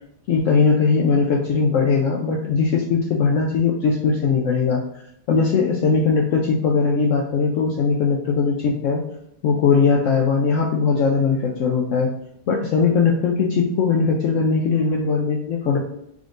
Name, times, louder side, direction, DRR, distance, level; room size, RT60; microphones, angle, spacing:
voice 1, 0.3-4.8 5.3-9.0 9.4-12.1 12.5-15.8, left 5 dB, 80° left, -1 dB, 0.7 m, -19 dB
3.6 x 3.5 x 2.5 m, 0.76 s
omnidirectional pair, 1.8 m